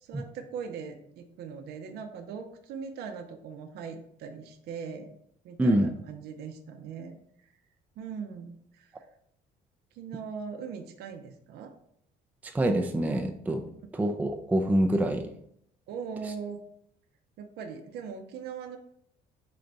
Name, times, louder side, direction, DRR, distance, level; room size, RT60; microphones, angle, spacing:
voice 1, 0.0-5.1 5.4-7.2 8.0-8.9 9.9-11.7 15.9-16.6 17.4-18.8, right 6 dB, 75° right, 6 dB, 0.6 m, -40 dB
voice 2, 5.6-5.9 12.4-13.6 13.9-15.3, right 1 dB, 10° right, 5 dB, 0.3 m, -26 dB
3.8 x 3.4 x 3.9 m, 0.71 s
cardioid pair, 110°, 17 cm